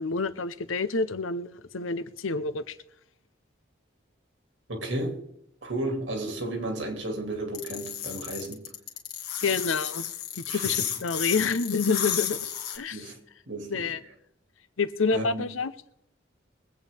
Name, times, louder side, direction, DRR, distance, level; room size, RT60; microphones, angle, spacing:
voice 1, 0.0-2.8 9.4-10.1 10.3-12.5 12.7-13.1 13.7-14.0 14.8-15.7, left 4 dB, 85° left, 0.8 m, -28 dB
voice 2, 4.7-5.2 5.6-8.7 10.5-10.8 12.9-13.2 13.5-13.9 15.1-15.4, right 1 dB, 70° right, 2.4 m, -33 dB
sound 1, 7.5-12.8, left 10 dB, 50° left, 2.0 m, -32 dB
23.0 x 8.4 x 3.5 m
head